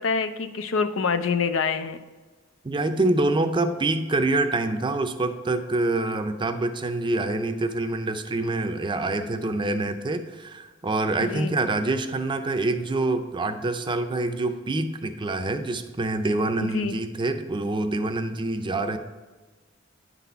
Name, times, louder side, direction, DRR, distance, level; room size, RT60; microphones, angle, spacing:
voice 1, 0.0-2.0 11.2-11.5 16.7-17.0, left 5 dB, 85° left, 10 dB, 0.5 m, -26 dB
voice 2, 2.6-19.0, right 2 dB, 25° right, 8 dB, 0.5 m, -26 dB
10.0 x 4.1 x 5.6 m, 1.3 s
head